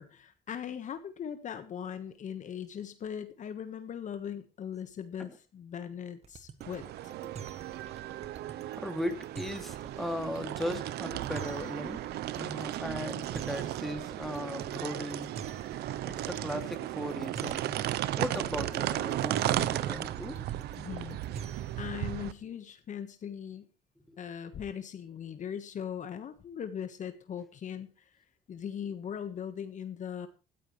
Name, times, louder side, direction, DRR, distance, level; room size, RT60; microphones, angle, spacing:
voice 1, 0.0-7.1 20.8-21.2 21.8-23.7 24.2-27.9 28.5-30.3, left 8 dB, 45° left, 9 dB, 1.5 m, -39 dB
sound 1, 6.2-21.9, right 5 dB, 40° right, 1.5 m, -48 dB
sound 2, 6.6-22.3, right 13 dB, 75° right, 0.8 m, -35 dB
voice 2, 8.7-12.0 12.3-15.3 16.0-17.7 18.2-20.4, left 1 dB, ahead, 5 dB, 2.6 m, -37 dB
17.0 x 13.5 x 3.3 m, 0.31 s
cardioid pair, 110°, 17 cm